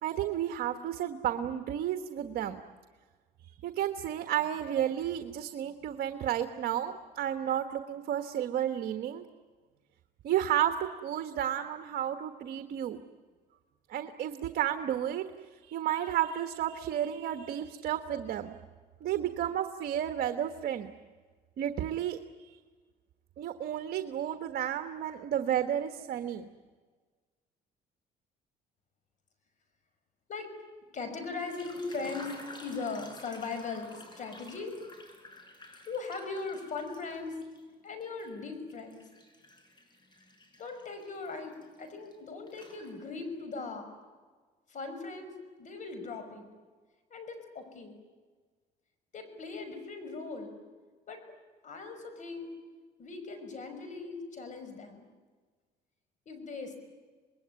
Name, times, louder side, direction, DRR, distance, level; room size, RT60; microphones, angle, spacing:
voice 1, 0.0-2.6 3.4-9.2 10.2-10.7 11.0-13.0 13.9-15.2 15.7-18.6 19.0-20.9 21.6-22.6 23.4-26.5, right 11 dB, 65° right, 8 dB, 1.4 m, -32 dB
voice 2, 30.9-32.3 32.6-34.8 35.9-37.4 37.8-39.0 40.6-43.9 44.7-46.5 47.1-48.0 49.1-50.6 51.1-51.2 51.6-52.5 53.0-55.1 56.3-56.8, left 4 dB, 45° left, 8 dB, 5.8 m, -39 dB
sound 1, 31.2-37.6 38.0-42.1 42.5-43.3, left 1 dB, 25° left, 6.0 m, -52 dB
26.5 x 21.0 x 9.6 m, 1.4 s
cardioid pair, 110°, 17 cm